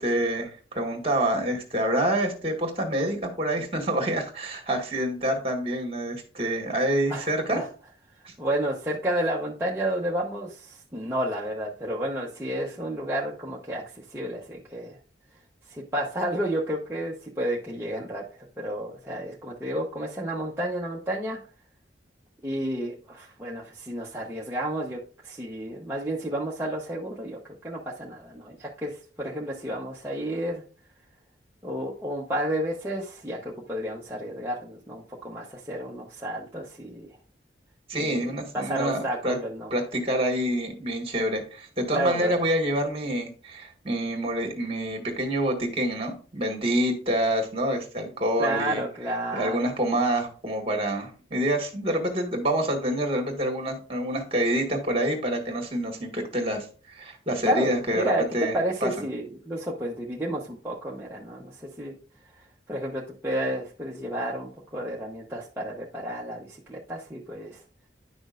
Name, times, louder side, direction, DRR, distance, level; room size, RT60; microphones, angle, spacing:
voice 1, 0.0-7.6 8.3-8.4 37.9-39.4 39.7-48.8 49.3-58.5 58.8-58.9, right 1 dB, 35° right, 3 dB, 1.8 m, -27 dB
voice 2, 7.1-7.7 8.4-15.0 15.7-21.4 22.4-27.4 27.6-30.6 31.6-37.1 37.9-39.7 41.9-42.4 48.4-49.6 57.4-58.2 58.5-61.9 62.7-67.6, right 1 dB, 15° right, -5 dB, 1.0 m, -31 dB
10.0 x 6.2 x 2.5 m, 0.38 s
head